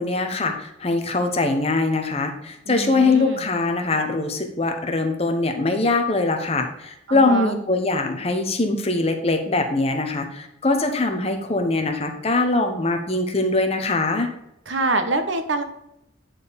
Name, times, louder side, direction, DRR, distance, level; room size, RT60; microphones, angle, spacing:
voice 1, 0.0-14.3, left 3 dB, 30° left, 5 dB, 1.0 m, -22 dB
voice 2, 2.7-3.4 7.1-7.6 14.7-15.6, right 2 dB, 80° right, 8 dB, 1.0 m, -25 dB
9.1 x 4.3 x 5.2 m, 0.82 s
head